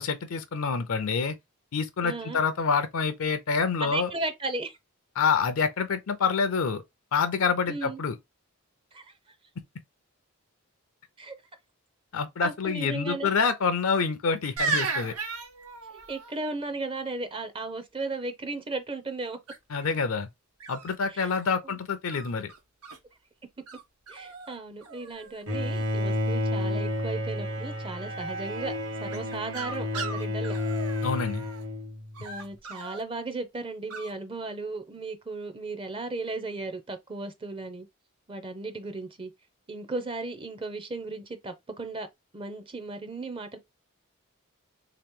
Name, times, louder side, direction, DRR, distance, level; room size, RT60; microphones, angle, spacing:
voice 1, 0.0-1.4 1.7-4.1 5.2-6.8 7.1-8.2 12.1-15.1 19.7-20.3 20.7-22.5 31.0-31.5, left 5 dB, 65° left, 0.5 m, -27 dB
voice 2, 2.0-2.4 3.8-4.8 7.7-8.0 8.9-9.0 11.2-11.3 12.4-13.3 15.9-19.4 21.1-21.3 21.6-21.7 24.1-28.7 29.0-30.6 32.2-37.9 38.3-39.3 39.7-42.1 42.3-43.6, right 3 dB, 25° right, 0.5 m, -35 dB
sound 1, 14.6-16.3 19.5-19.9 20.6-21.5 22.0-23.0 23.7-23.8 24.1-24.6 24.8-25.4 29.1-31.6 32.1-33.0 33.9-34.1, right 4 dB, 85° right, 1.1 m, -35 dB
Bowed string instrument, 25.5-32.2, left 1 dB, 55° right, 1.1 m, -31 dB
3.2 x 2.9 x 3.6 m
head